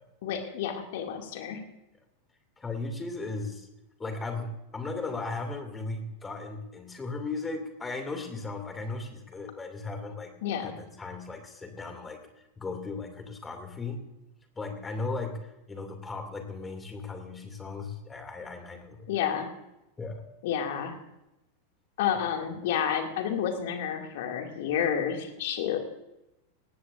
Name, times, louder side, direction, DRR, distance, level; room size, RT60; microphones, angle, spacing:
voice 1, 0.2-1.6 10.4-10.8 19.1-19.5 20.4-21.0 22.0-26.0, left 8 dB, 55° left, 4 dB, 2.2 m, -30 dB
voice 2, 2.6-3.7 4.0-10.3 10.6-14.0 14.6-19.1 20.0-20.2, left 3 dB, 15° left, 6 dB, 2.5 m, -36 dB
19.0 x 16.0 x 2.6 m, 0.92 s
figure-of-eight pair, 90°, 0 cm